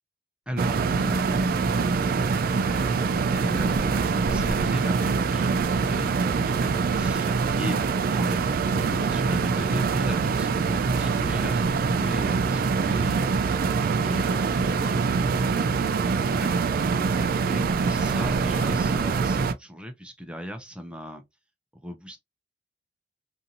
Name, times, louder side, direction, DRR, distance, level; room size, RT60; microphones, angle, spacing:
voice 1, 0.5-2.0 2.7-3.0 3.3-13.6 14.0-16.6 17.4-21.2 21.8-22.2, equal, 5° right, 0.5 m, -37 dB
sound 1, 0.6-19.5, right 5 dB, 55° right, 0.3 m, -24 dB
2.6 x 2.5 x 2.7 m
head